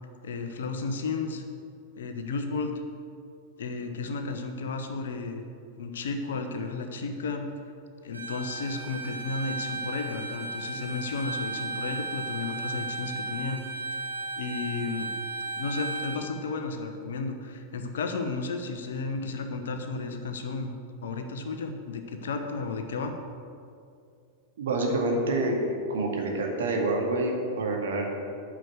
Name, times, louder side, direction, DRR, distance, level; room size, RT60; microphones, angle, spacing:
voice 1, 0.2-1.4 2.0-2.8 3.6-5.5 5.8-7.5 8.0-13.6 14.3-15.1 15.6-20.7 21.0-23.1, left 4 dB, 65° left, 6 dB, 1.0 m, -33 dB
Bowed string instrument, 8.1-16.2, right 3 dB, 80° right, 1.1 m, -35 dB
voice 2, 24.6-25.6 25.9-28.1, right 2 dB, 60° right, 0 dB, 2.1 m, -27 dB
9.2 x 6.3 x 8.2 m, 2.4 s
figure-of-eight pair, 90°, 0 cm